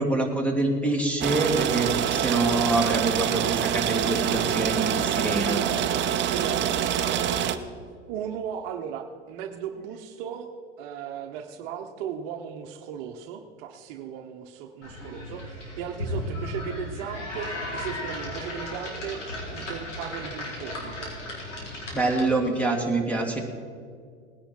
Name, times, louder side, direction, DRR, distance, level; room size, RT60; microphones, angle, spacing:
voice 1, 0.0-5.6 21.9-23.4, right 2 dB, 5° left, 3 dB, 2.2 m, -26 dB
sound 1, 1.2-7.6, right 9 dB, 30° right, 0.8 m, -25 dB
voice 2, 2.0-2.4 5.3-5.9 6.2-7.2 8.1-21.1, right 8 dB, 50° right, 5 dB, 1.0 m, -37 dB
sound 2, 14.8-22.5, left 1 dB, 80° left, 4.3 m, -35 dB
18.5 x 10.0 x 4.4 m, 2.1 s
hypercardioid pair, 90°, 36 cm